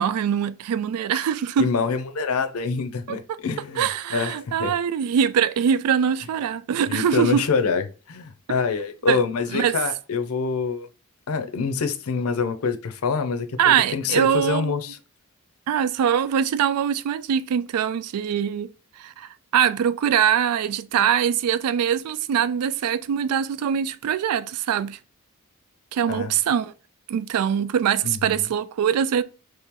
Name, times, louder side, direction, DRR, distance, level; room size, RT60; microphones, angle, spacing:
voice 1, 0.0-1.7 3.1-3.2 3.8-7.4 9.1-9.2 9.5-9.8 13.6-14.8 15.7-18.7 19.0-25.0 25.9-26.7 27.1-29.2, right 8 dB, 80° right, 0.3 m, -23 dB
voice 2, 1.6-4.7 6.9-10.9 11.3-15.0 26.1-26.3 28.0-28.5, left 5 dB, 70° left, 0.5 m, -26 dB
3.2 x 3.0 x 3.6 m
head